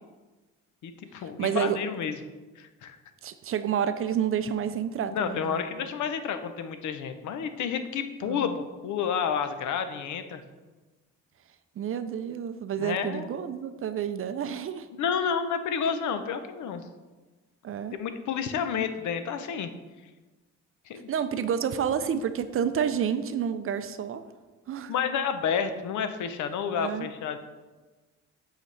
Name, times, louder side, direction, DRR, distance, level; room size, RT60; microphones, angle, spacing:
voice 1, 0.8-2.2 2.6-3.0 5.1-10.4 12.8-13.3 15.0-16.8 17.9-19.7 20.9-21.1 24.9-27.4, left 7 dB, 75° left, 9 dB, 0.6 m, -30 dB
voice 2, 1.4-1.8 3.2-5.6 8.2-8.6 11.8-14.9 17.6-18.0 21.1-24.2 24.7-24.9 26.7-27.1, right 8 dB, 45° right, 11 dB, 0.4 m, -29 dB
7.9 x 4.0 x 3.2 m, 1.2 s
cardioid pair, 90°, 30 cm